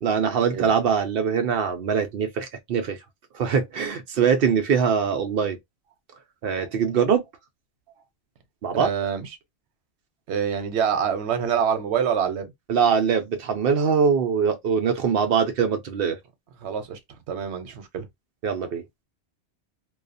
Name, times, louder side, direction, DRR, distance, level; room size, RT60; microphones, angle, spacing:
voice 1, 0.0-3.0 3.3-5.6 6.4-7.2 8.6-8.9 12.7-16.2 18.4-18.8, right 6 dB, 65° right, 0.7 m, -22 dB
voice 2, 8.7-9.3 10.3-12.5 16.6-17.0 17.3-18.0, right 7 dB, 85° right, 0.9 m, -26 dB
2.3 x 2.3 x 2.5 m
omnidirectional pair, 1.1 m